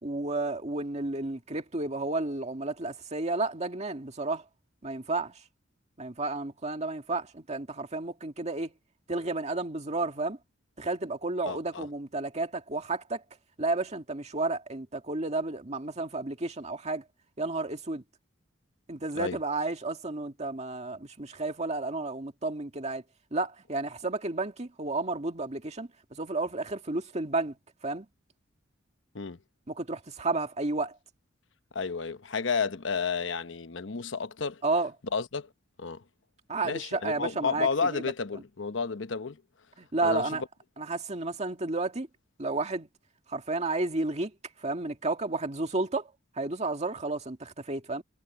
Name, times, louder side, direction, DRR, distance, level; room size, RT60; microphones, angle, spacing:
voice 1, 0.0-4.4 4.8-5.3 6.0-8.7 9.1-10.4 10.8-13.2 13.6-17.0 17.4-18.0 18.9-23.0 23.3-27.6 27.8-28.1 29.7-31.0 34.6-34.9 36.5-38.0 39.8-40.4 40.8-42.1 42.4-42.9 43.3-44.3 44.6-46.1 46.4-48.0, right 2 dB, 35° right, 2.1 m, -32 dB
voice 2, 11.5-11.8 19.1-19.4 29.1-29.4 31.7-34.6 35.1-35.5 35.8-36.0 36.6-39.4 40.0-40.5, left 5 dB, 70° left, 1.0 m, -31 dB
head